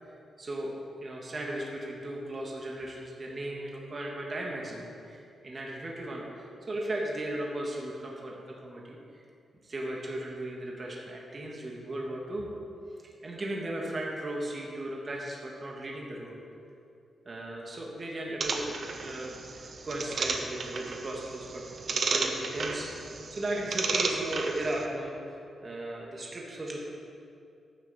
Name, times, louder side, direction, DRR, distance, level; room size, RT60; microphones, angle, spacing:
voice 1, 0.4-9.2 9.6-12.5 13.2-16.4 17.2-25.4 25.6-26.8, right 1 dB, 30° right, -2 dB, 1.3 m, -36 dB
sound 1, 18.4-24.9, right 4 dB, 45° right, 0.8 m, -33 dB
10.5 x 8.9 x 4.1 m, 2.5 s
wide cardioid pair, 150°, 0 cm